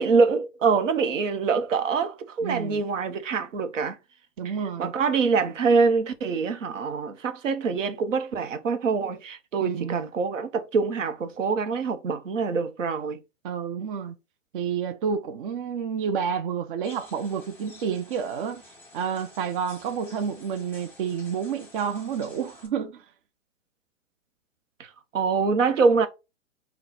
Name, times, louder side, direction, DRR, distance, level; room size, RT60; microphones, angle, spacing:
voice 1, 0.0-4.0 4.4-4.5 4.8-13.2 24.8-26.1, right 5 dB, 70° right, 0.9 m, -25 dB
voice 2, 2.4-2.8 4.4-4.9 9.6-10.0 13.4-14.1 14.5-18.6 18.9-23.0, right 7 dB, 40° right, 0.5 m, -29 dB
sound 1, 16.8-22.7, left 2 dB, 5° left, 1.3 m, -50 dB
3.9 x 2.2 x 4.0 m
hypercardioid pair, 120°, 39 cm